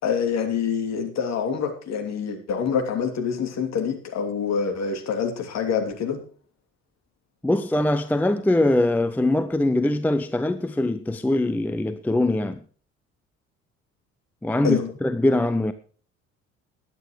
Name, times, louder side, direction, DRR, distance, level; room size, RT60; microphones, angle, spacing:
voice 1, 0.0-6.2 14.6-14.9, left 6 dB, 40° left, 3.0 m, -26 dB
voice 2, 7.4-12.6 14.4-15.7, left 1 dB, 5° left, 0.6 m, -22 dB
21.5 x 9.1 x 3.2 m
figure-of-eight pair, 55°, 39 cm